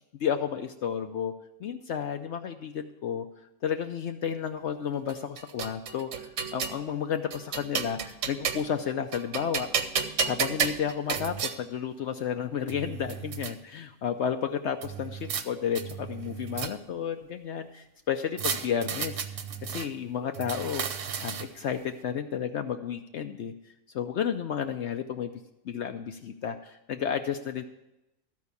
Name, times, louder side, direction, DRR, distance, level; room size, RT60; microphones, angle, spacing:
voice 1, 0.2-1.3 1.6-3.3 3.6-9.7 10.2-19.2 19.6-23.5 23.9-25.3 25.6-27.6, left 8 dB, 70° left, 7 dB, 0.6 m, -32 dB
sound 1, 5.1-6.8 7.3-8.8 9.1-11.6 12.3-12.4 12.7-13.5 14.8-15.4 15.7-17.0 18.4-19.9 20.3-21.7, right 6 dB, 60° right, 1.0 m, -32 dB
13.0 x 4.6 x 8.2 m, 0.92 s
omnidirectional pair, 1.7 m